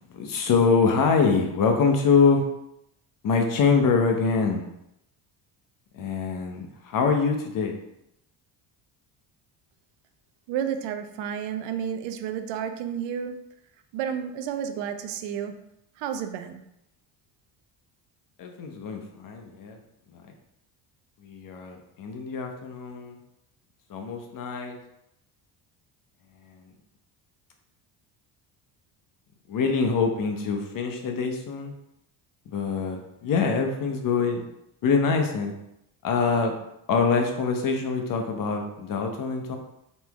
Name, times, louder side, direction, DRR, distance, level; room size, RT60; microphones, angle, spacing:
voice 1, 0.0-2.5 3.2-4.6 5.9-7.8 18.4-19.8 21.2-23.2 23.9-24.8 26.5-26.6 29.5-31.7 32.5-34.4 34.8-35.5 36.0-36.5 36.9-39.6, left 5 dB, 50° left, 3 dB, 0.9 m, -24 dB
voice 2, 10.5-13.4 13.9-15.6 16.0-16.6, right 8 dB, 80° right, 8 dB, 0.6 m, -31 dB
4.3 x 3.0 x 3.5 m, 0.82 s
cardioid pair, 110°, 43 cm